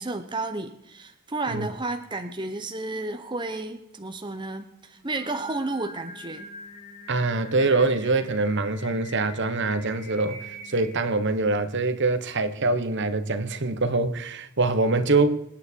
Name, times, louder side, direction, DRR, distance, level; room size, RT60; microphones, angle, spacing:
voice 1, 0.0-6.5, right 2 dB, 20° right, 1.0 m, -32 dB
Singing, 5.0-10.9, equal, 35° left, 3.3 m, -44 dB
voice 2, 7.1-15.4, right 3 dB, 55° right, 1.4 m, -24 dB
26.5 x 9.5 x 4.7 m
head